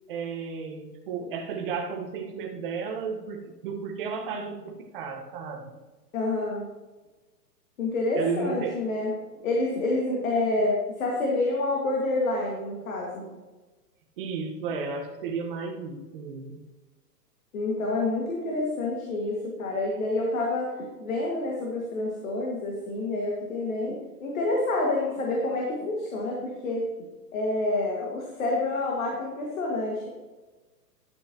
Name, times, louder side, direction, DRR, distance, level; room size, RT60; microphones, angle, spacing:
voice 1, 0.1-5.7 8.1-8.8 14.2-16.6, right 5 dB, 35° right, 1 dB, 1.3 m, -33 dB
voice 2, 6.1-6.7 7.8-9.1 9.4-13.4 17.5-20.7 21.0-26.8 27.3-30.1, left 2 dB, 55° left, -2 dB, 2.1 m, -28 dB
12.0 x 8.2 x 3.0 m, 1.2 s
hypercardioid pair, 165°, 49 cm